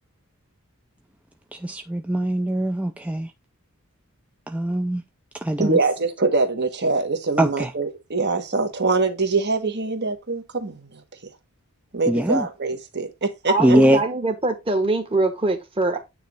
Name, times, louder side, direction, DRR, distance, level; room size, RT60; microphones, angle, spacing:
voice 1, 1.5-3.3 4.5-5.0 5.4-5.8 7.4-7.7 12.1-12.5 13.6-14.0, right 1 dB, 5° right, 0.4 m, -21 dB
voice 2, 5.6-11.0 11.9-13.8, right 3 dB, 50° right, 1.3 m, -24 dB
voice 3, 13.5-16.0, right 2 dB, 25° right, 1.4 m, -23 dB
9.2 x 3.1 x 5.2 m
head